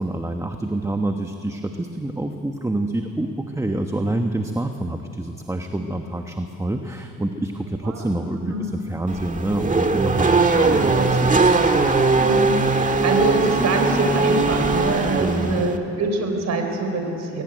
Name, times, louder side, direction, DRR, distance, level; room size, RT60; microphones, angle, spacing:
voice 1, 0.0-11.8 15.2-15.6, right 1 dB, 10° right, 5 dB, 1.2 m, -27 dB
Race car auto racing / Accelerating revving vroom, 9.1-15.8, right 3 dB, 25° right, 1.7 m, -20 dB
voice 2, 12.2-17.4, right 3 dB, 60° right, 4 dB, 4.4 m, -25 dB
22.0 x 18.0 x 9.1 m, 2.9 s
cardioid pair, 90°, 30 cm